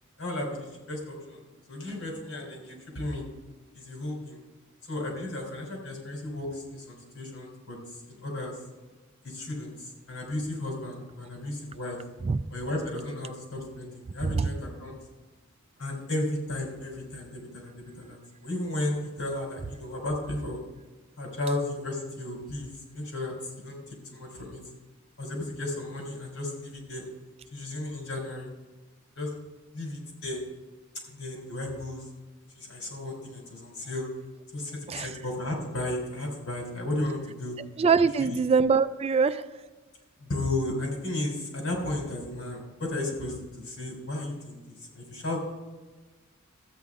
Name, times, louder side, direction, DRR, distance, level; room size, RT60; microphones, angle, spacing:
voice 1, 0.2-1.4 1.7-3.2 3.7-4.4 4.8-7.8 8.1-8.5 9.2-12.0 12.5-15.0 15.8-20.6 21.2-23.8 24.1-24.6 25.2-27.1 27.5-28.5 29.2-29.3 29.7-30.4 31.1-32.1 32.5-34.0 34.5-37.5 38.2-38.4 40.2-45.4, left 1 dB, 80° left, -1 dB, 3.9 m, -34 dB
voice 2, 37.8-39.4, right 5 dB, 30° right, 12 dB, 0.3 m, -23 dB
14.0 x 8.8 x 3.7 m, 1.2 s
head